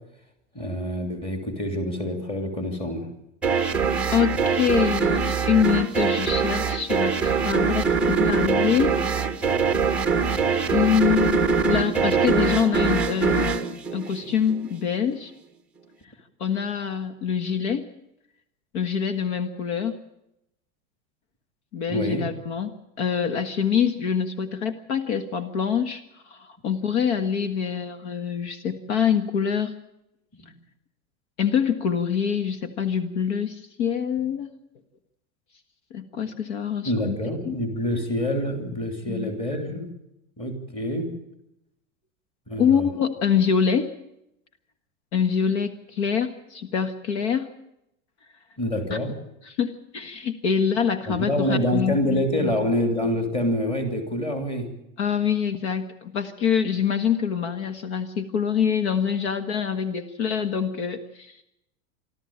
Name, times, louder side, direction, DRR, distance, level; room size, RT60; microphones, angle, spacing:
voice 1, 0.5-3.1 21.9-22.2 36.8-39.9 40.4-41.1 42.5-42.9 48.6-49.1 51.1-54.7, left 1 dB, 15° left, 5 dB, 3.0 m, -26 dB
sound 1, 3.4-14.7, right 5 dB, 5° right, 0.8 m, -23 dB
voice 2, 4.1-8.9 9.4-9.7 10.7-13.6 13.9-15.3 16.4-17.9 18.7-20.0 21.7-22.7 23.0-29.7 31.4-34.5 35.9-37.2 37.4-37.6 39.0-39.3 42.6-43.9 45.1-47.5 48.9-49.0 49.4-52.6 55.0-61.4, left 7 dB, 60° left, 9 dB, 1.7 m, -25 dB
25.5 x 13.0 x 8.8 m, 0.84 s
supercardioid pair, 175°, 37 cm